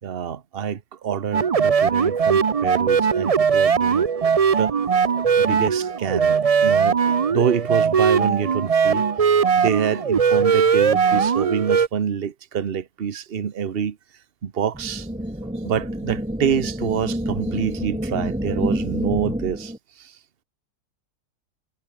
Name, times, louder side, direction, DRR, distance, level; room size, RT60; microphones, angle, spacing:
voice 1, 0.0-4.1 4.6-4.9 5.4-14.0 14.4-15.1 15.6-20.2, right 7 dB, 40° right, 1.2 m, -27 dB
sound 1, 1.3-11.9, right 6 dB, 55° right, 0.3 m, -19 dB
sound 2, 14.7-19.8, equal, 5° right, 1.9 m, -28 dB
omnidirectional pair, 1.7 m